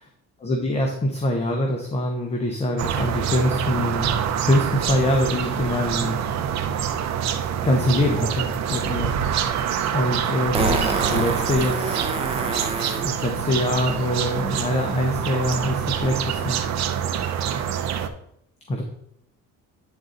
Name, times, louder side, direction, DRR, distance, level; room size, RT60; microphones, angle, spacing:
voice 1, 0.4-4.1 4.4-6.2 7.6-9.6 9.9-12.1 13.0-16.6 17.0-17.1 18.7-18.8, left 1 dB, 20° left, 2 dB, 0.8 m, -24 dB
sound 1, 2.8-18.1, right 8 dB, 55° right, 0.6 m, -26 dB
Fart, 9.4-9.5 10.5-13.1 15.5-15.6, right 3 dB, 20° right, 0.8 m, -27 dB
8.7 x 3.8 x 3.9 m, 0.72 s
cardioid pair, 140°, 32 cm